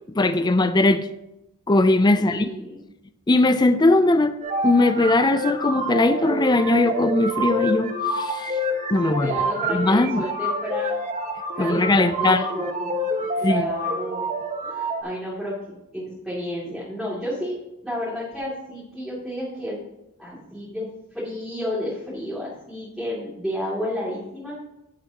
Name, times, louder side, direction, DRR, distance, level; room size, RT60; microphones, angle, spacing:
voice 1, 0.1-1.1 1.7-2.5 3.3-4.4 4.6-8.5 8.9-9.3 9.7-10.3 11.6-12.4 13.4-13.7, left 2 dB, 20° left, 9 dB, 0.4 m, -19 dB
voice 2, 2.1-2.8 8.9-10.9 11.6-13.0 13.4-14.3 14.6-17.5 17.8-19.8 20.2-24.6, equal, ahead, -9 dB, 2.7 m, -31 dB
sound 1, 4.4-15.0, equal, 35° right, 1.4 m, -27 dB
16.5 x 7.1 x 2.9 m, 0.89 s
head